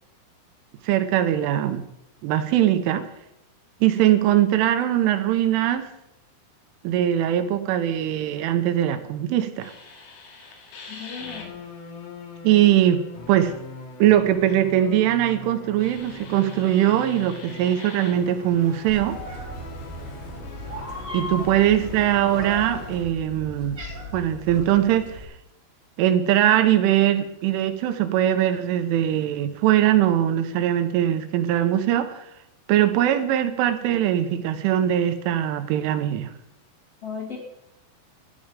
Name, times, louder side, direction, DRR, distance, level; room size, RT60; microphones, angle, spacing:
voice 1, 0.8-1.8 2.2-3.1 3.8-5.9 6.8-9.7 12.4-13.0 13.3-13.5 14.0-19.2 21.1-23.8 24.1-25.3 26.0-32.3 32.7-36.3, right 11 dB, 80° right, 9 dB, 3.2 m, -21 dB
sound 1, 9.6-23.0, left 4 dB, 75° left, 4.6 m, -41 dB
voice 2, 10.9-11.6 21.4-21.5 37.0-37.4, left 6 dB, 40° left, -3 dB, 2.5 m, -36 dB
Meow, 18.9-25.2, equal, 20° right, 1.8 m, -37 dB
13.5 x 10.5 x 5.1 m, 0.84 s
omnidirectional pair, 5.9 m